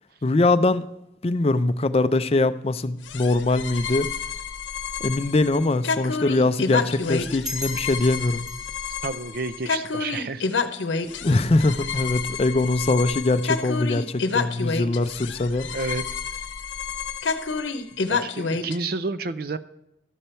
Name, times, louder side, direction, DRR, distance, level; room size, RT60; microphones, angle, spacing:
voice 1, 0.2-0.9 1.2-4.1 5.0-8.4 11.2-15.7, left 2 dB, 30° left, 0.4 m, -22 dB
sound 1, 3.0-18.8, left 5 dB, 85° left, 0.8 m, -29 dB
sound 2, 7.4-10.5, left 1 dB, 20° right, 1.1 m, -39 dB
voice 2, 9.0-10.4 15.7-16.0 18.1-19.6, right 3 dB, 50° right, 0.5 m, -30 dB
13.0 x 6.9 x 4.4 m
head